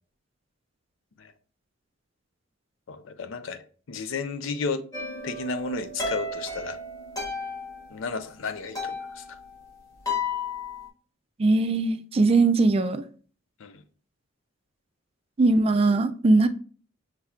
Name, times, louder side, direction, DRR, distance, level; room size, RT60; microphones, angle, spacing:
voice 1, 2.9-3.6 3.9-4.8 5.2-6.8 7.9-9.4 13.6-13.8, left 4 dB, 75° left, 0.5 m, -33 dB
sound 1, 4.9-8.2 8.5-10.9, left 3 dB, 20° left, 1.3 m, -34 dB
voice 2, 11.4-13.0 15.4-16.5, right 3 dB, 30° right, 0.3 m, -20 dB
5.7 x 3.3 x 2.3 m
head